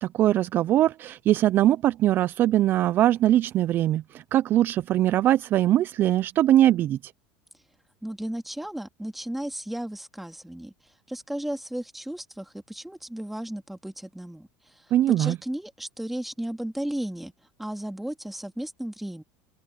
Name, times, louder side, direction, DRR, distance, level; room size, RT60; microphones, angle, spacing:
voice 1, 0.0-7.1 14.9-15.4, right 13 dB, 40° right, 0.4 m, -21 dB
voice 2, 8.0-17.3 17.6-19.2, right 1 dB, 5° right, 2.3 m, -34 dB
open air
supercardioid pair, 130°, 5 cm